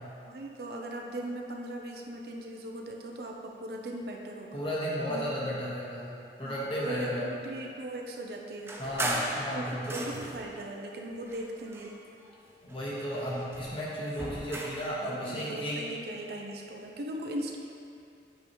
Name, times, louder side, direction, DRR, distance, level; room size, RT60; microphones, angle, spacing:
voice 1, 0.2-4.7 5.1-5.5 6.4-8.7 9.5-11.9 15.0-17.6, right 1 dB, 60° right, 1 dB, 0.5 m, -39 dB
voice 2, 4.5-7.3 8.8-10.1 12.6-15.9, equal, 30° left, -7 dB, 1.3 m, -34 dB
sound 1, 8.7-10.5 11.2-12.4 12.7-14.9, right 1 dB, 15° right, 0.5 m, -37 dB
8.2 x 5.1 x 3.0 m, 2.6 s
head